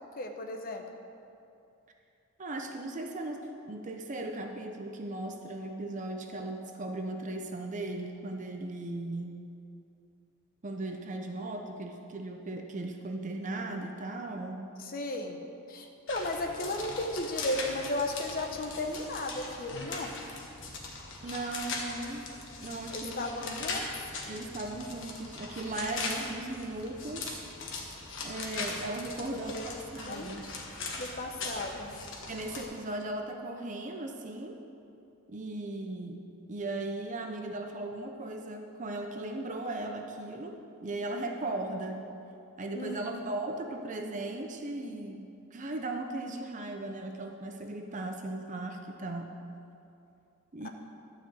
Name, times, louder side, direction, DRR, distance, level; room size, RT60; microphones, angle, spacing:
voice 1, 0.1-0.8 14.8-15.4 15.7-20.1 22.9-24.1 29.2-29.7 30.0-30.6 31.0-31.9 42.7-43.0 50.6-50.7, left 1 dB, 40° left, 4 dB, 0.8 m, -35 dB
voice 2, 2.4-3.4 3.7-9.4 10.6-14.6 21.2-22.2 22.6-23.6 24.3-27.4 28.2-30.5 32.3-34.6 35.3-36.2 36.5-42.0 42.6-45.2 45.5-49.4 50.5-50.7, right 2 dB, 35° right, 4 dB, 0.6 m, -37 dB
sound 1, 16.1-32.6, left 3 dB, 60° left, 1.4 m, -40 dB
12.0 x 4.9 x 7.8 m, 2.7 s
head